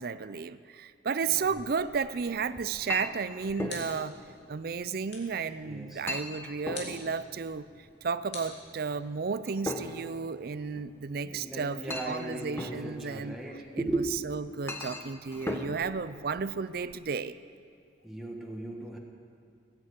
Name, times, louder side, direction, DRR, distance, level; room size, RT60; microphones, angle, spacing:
voice 1, 0.0-4.2 4.5-7.7 8.0-17.4, right 5 dB, 55° right, 15 dB, 0.5 m, -33 dB
Chink clink, 1.4-17.0, left 2 dB, 15° left, 1.0 m, -41 dB
sound 1, 3.7-4.2 5.1-5.5 6.7-7.1 8.3-9.2, left 4 dB, 65° left, 3.0 m, -45 dB
voice 2, 5.7-6.0 11.2-14.1 18.0-19.0, right 2 dB, ahead, -1 dB, 1.4 m, -37 dB
18.5 x 9.0 x 8.1 m, 2.3 s
head